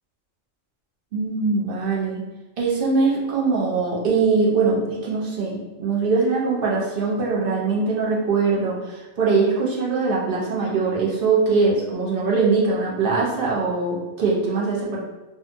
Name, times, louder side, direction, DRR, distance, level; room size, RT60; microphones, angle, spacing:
voice 1, 1.1-2.2 2.6-15.0, right 4 dB, 60° right, -3 dB, 0.6 m, -22 dB
2.7 x 2.2 x 2.5 m, 1.1 s
omnidirectional pair, 1.3 m